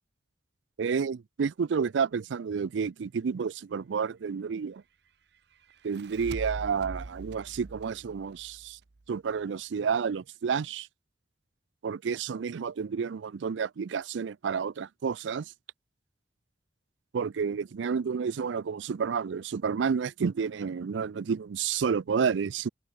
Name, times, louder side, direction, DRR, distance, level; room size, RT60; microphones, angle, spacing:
voice 1, 0.8-4.8 5.8-8.8 9.1-10.9 11.8-15.5 17.1-22.7, right 6 dB, 80° right, 0.4 m, -30 dB
sound 1, 5.7-9.1, right 2 dB, 65° right, 0.8 m, -42 dB
head